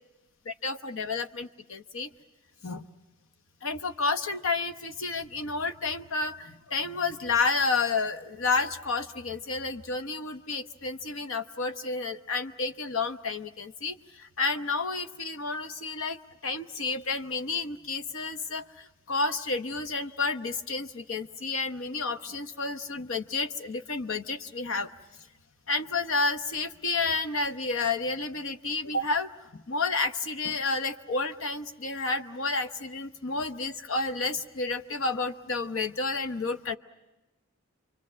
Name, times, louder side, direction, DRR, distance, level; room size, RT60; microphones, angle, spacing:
voice 1, 0.5-2.1 2.6-2.9 3.6-16.2 16.4-24.9 25.7-36.8, left 3 dB, 70° left, 9 dB, 1.0 m, -30 dB
28.5 x 24.5 x 7.5 m, 1.1 s
head